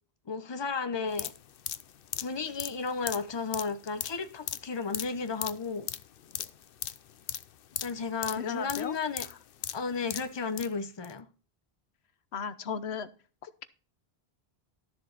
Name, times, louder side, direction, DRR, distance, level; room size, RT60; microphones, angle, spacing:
voice 1, 0.3-1.3 2.2-5.9 7.8-9.3 9.7-11.3, left 4 dB, 25° left, 0.9 m, -33 dB
sound 1, 1.1-10.7 11.0-11.1, left 10 dB, 65° left, 0.8 m, -38 dB
voice 2, 8.4-9.0 9.3-9.4 12.3-13.1 13.4-13.6, left 6 dB, 80° left, 1.1 m, -36 dB
12.5 x 7.3 x 4.0 m
omnidirectional pair, 1.1 m